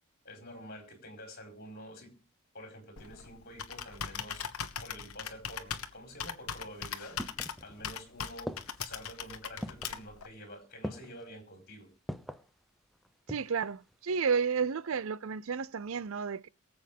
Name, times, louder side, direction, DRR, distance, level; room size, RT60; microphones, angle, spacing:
voice 1, 0.2-2.1 2.5-4.4 4.8-7.2 7.6-8.5 8.8-11.9, equal, 45° left, 4.4 m, -48 dB
Computer keyboard, 3.0-10.3, left 7 dB, 85° left, 1.2 m, -40 dB
sound 1, 7.2-8.0 8.5-9.0 9.6-10.0 10.8-11.3 12.1-12.5 13.0-13.6 13.9-14.0, equal, ahead, 0.6 m, -41 dB
voice 2, 13.3-16.5, right 6 dB, 65° right, 0.5 m, -32 dB
23.0 x 7.8 x 3.6 m
head